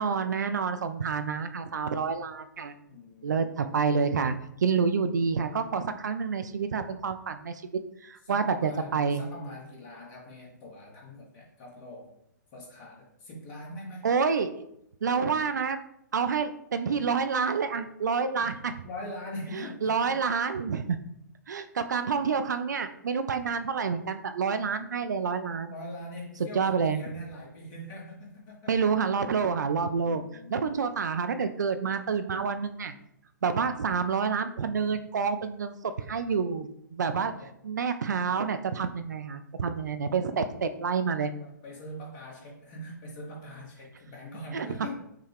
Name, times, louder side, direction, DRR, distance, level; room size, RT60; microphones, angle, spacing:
voice 1, 0.0-2.7 3.2-4.3 4.6-7.6 8.0-9.2 14.0-14.5 15.0-15.8 16.1-18.7 19.5-21.0 21.5-25.7 26.4-27.0 28.7-30.2 30.5-32.9 33.4-37.3 37.6-41.3 44.5-44.7, right 5 dB, 65° right, 9 dB, 0.4 m, -28 dB
voice 2, 2.9-3.5 8.3-12.1 12.5-14.1 18.8-20.2 25.6-28.7 30.0-30.7 37.1-37.5 40.2-40.5 41.4-44.9, left 1 dB, 35° left, -2 dB, 1.3 m, -42 dB
5.6 x 2.3 x 3.4 m, 0.77 s
figure-of-eight pair, 115°, 10 cm